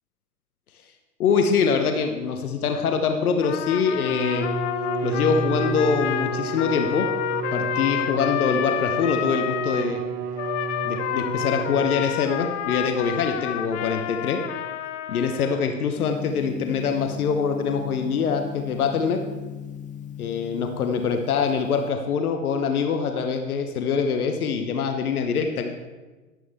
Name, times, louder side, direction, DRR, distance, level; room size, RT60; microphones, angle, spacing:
voice 1, 1.2-4.5 5.0-7.1 7.5-10.0 10.8-14.4 15.1-19.2 20.2-25.7, left 6 dB, 70° left, 5 dB, 1.1 m, -24 dB
Trumpet, 3.4-9.9 10.4-15.7, left 12 dB, 50° left, 0.7 m, -29 dB
Bowed string instrument, 3.9-12.2, right 5 dB, 20° right, 0.4 m, -31 dB
Gong, 16.0-21.8, left 8 dB, 15° left, 0.8 m, -37 dB
11.0 x 11.0 x 3.5 m, 1.2 s
hypercardioid pair, 105°, 45 cm